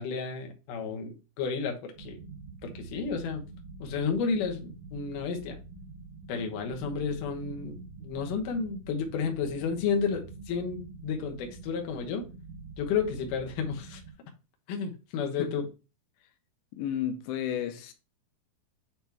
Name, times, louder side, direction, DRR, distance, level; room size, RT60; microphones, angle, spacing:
voice 1, 0.0-2.2 2.6-3.4 3.8-5.6 6.3-12.3 12.8-14.0 14.7-15.6, left 5 dB, 65° left, 2.3 m, -32 dB
sound 1, 1.9-14.1, right 3 dB, 55° right, 2.5 m, -46 dB
voice 2, 16.7-17.9, left 10 dB, 90° left, 2.9 m, -32 dB
9.0 x 3.0 x 3.4 m
omnidirectional pair, 4.9 m